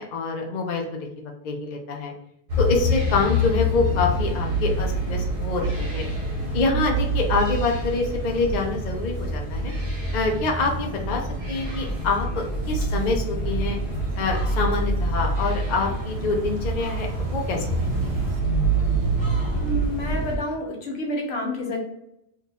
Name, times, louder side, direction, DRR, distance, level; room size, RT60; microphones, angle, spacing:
voice 1, 0.0-2.1 2.6-6.1 6.5-9.7 10.1-13.8 14.2-18.2, left 3 dB, 50° left, 1 dB, 0.6 m, -26 dB
sound 1, 2.5-20.4, right 1 dB, 55° right, 1.1 m, -26 dB
sound 2, 6.9-10.8 13.9-18.4, right 2 dB, 75° right, 0.9 m, -35 dB
voice 2, 19.5-21.8, left 1 dB, 75° left, 1 dB, 1.0 m, -29 dB
2.7 x 2.4 x 3.9 m, 0.81 s
omnidirectional pair, 1.1 m